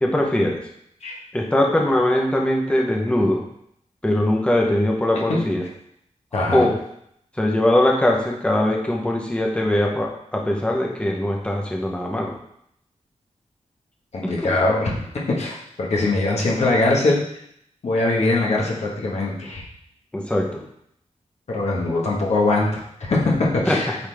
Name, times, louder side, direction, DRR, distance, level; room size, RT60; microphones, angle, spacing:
voice 1, 0.0-0.6 1.3-3.4 4.0-5.6 6.5-6.8 7.4-12.3 14.2-14.5 20.1-20.6 23.7-23.8, left 1 dB, 10° left, 0 dB, 0.9 m, -21 dB
voice 2, 6.3-6.7 14.1-15.0 15.4-17.2 17.8-19.6 21.5-24.0, left 2 dB, 60° left, -3 dB, 1.5 m, -22 dB
8.3 x 4.1 x 3.5 m, 0.72 s
wide cardioid pair, 165°, 12 cm